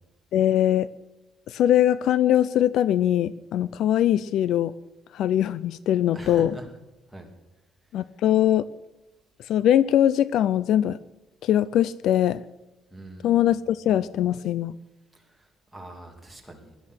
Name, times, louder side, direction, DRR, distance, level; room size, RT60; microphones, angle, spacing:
voice 1, 0.3-0.9 1.5-4.7 5.1-6.5 7.9-8.7 9.5-11.0 11.4-12.4 13.2-14.8, left 11 dB, 65° left, 18 dB, 0.5 m, -21 dB
voice 2, 6.1-6.7 7.1-7.3 12.9-13.6 15.1-16.9, right 1 dB, ahead, 1 dB, 2.9 m, -43 dB
17.5 x 12.0 x 6.5 m, 0.99 s
cardioid pair, 145°, 0 cm